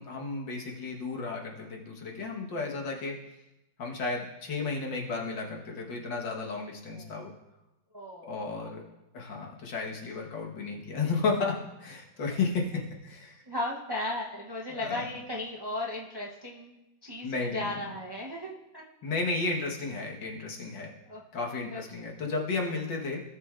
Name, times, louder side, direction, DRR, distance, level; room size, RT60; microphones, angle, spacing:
voice 1, 0.0-3.2 3.8-7.3 8.2-8.8 9.1-13.4 14.8-15.1 17.2-17.8 19.0-20.9 21.3-23.2, left 4 dB, 75° left, -1 dB, 2.1 m, -33 dB
voice 2, 7.9-8.3 13.5-16.7 17.0-17.3 17.5-18.8 21.1-21.2 21.7-22.1, left 1 dB, 40° right, -4 dB, 0.3 m, -36 dB
17.5 x 6.8 x 2.5 m, 0.98 s
omnidirectional pair, 2.0 m